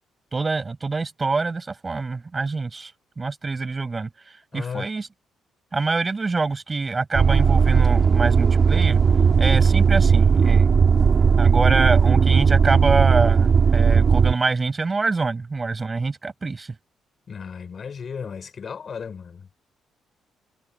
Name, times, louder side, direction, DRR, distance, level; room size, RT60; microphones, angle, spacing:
voice 1, 0.3-5.1 5.7-9.0 9.4-10.7 11.3-16.7, right 3 dB, 25° right, 7.9 m, -25 dB
voice 2, 4.5-4.9 17.3-19.6, left 6 dB, 45° left, 5.6 m, -35 dB
sound 1, 7.1-14.3, right 6 dB, 45° right, 2.9 m, -17 dB
cardioid pair, 90°, 0 cm